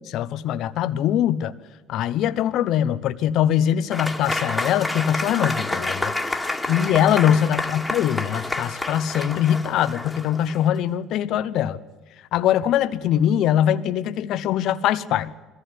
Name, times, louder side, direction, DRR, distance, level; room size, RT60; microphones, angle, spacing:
voice 1, 0.1-1.5 1.9-6.1 6.7-11.8 12.3-15.3, left 10 dB, 70° left, 13 dB, 0.8 m, -22 dB
Applause / Crowd, 3.9-10.7, left 2 dB, 10° left, 2.2 m, -29 dB
22.0 x 15.0 x 9.6 m, 1.2 s
supercardioid pair, 85°, 0 cm